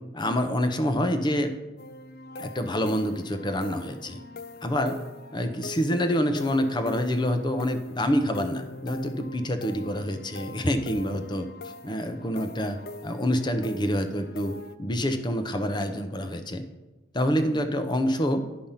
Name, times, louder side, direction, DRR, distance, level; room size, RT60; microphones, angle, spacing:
voice 1, 0.1-1.5 2.4-4.2 4.6-5.0 5.3-11.5 11.8-14.5 14.8-16.6 17.1-18.4, equal, 25° left, 8 dB, 0.7 m, -27 dB
sound 1, 1.8-14.8, left 2 dB, 55° left, 0.5 m, -42 dB
10.5 x 5.2 x 5.6 m, 1.2 s
head